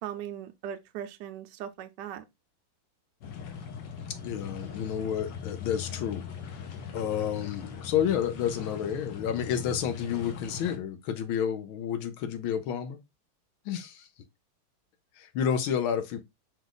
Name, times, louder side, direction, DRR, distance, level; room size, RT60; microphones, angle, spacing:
voice 1, 0.0-2.2, right 10 dB, 70° right, 1.1 m, -39 dB
sound 1, 3.2-10.8, left 6 dB, 65° left, 1.4 m, -40 dB
voice 2, 4.1-6.6 6.9-13.0 13.6-14.1 15.2-16.2, left 8 dB, 80° left, 1.5 m, -30 dB
5.0 x 2.4 x 3.8 m
omnidirectional pair, 2.2 m